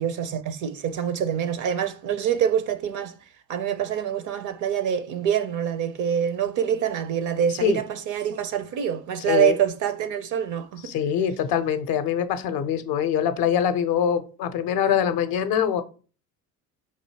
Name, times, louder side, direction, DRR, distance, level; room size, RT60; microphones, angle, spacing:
voice 1, 0.0-3.1 3.5-10.9, right 9 dB, 40° right, 0.6 m, -25 dB
voice 2, 10.8-15.8, left 8 dB, 50° left, 0.6 m, -23 dB
5.2 x 2.7 x 2.8 m
figure-of-eight pair, 60°, 47 cm